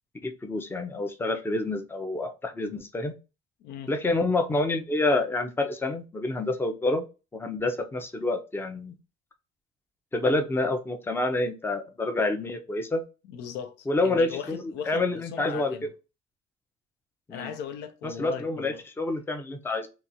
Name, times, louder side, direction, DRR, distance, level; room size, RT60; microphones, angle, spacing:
voice 1, 0.2-3.1 3.9-7.1 7.3-8.9 10.1-13.0 13.9-15.7 17.3-17.5 18.0-19.9, left 2 dB, 15° left, 0.5 m, -28 dB
voice 2, 3.6-3.9 13.3-15.9 17.3-18.8, left 8 dB, 80° left, 0.5 m, -38 dB
2.9 x 2.3 x 2.5 m
cardioid pair, 110°, 17 cm